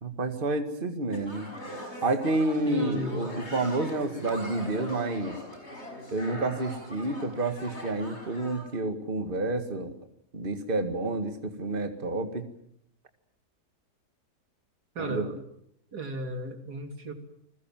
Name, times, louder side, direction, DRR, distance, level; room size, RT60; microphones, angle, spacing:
voice 1, 0.0-1.5 2.0-5.4 6.1-9.9 10.3-12.5 15.0-15.3, right 2 dB, 30° right, 7 dB, 2.1 m, -29 dB
sound 1, 1.1-8.7, equal, 40° left, 6.6 m, -41 dB
voice 2, 2.7-3.3 14.9-15.4 15.9-17.1, right 1 dB, 65° right, 6 dB, 3.3 m, -34 dB
29.5 x 21.0 x 7.6 m, 0.70 s
omnidirectional pair, 1.8 m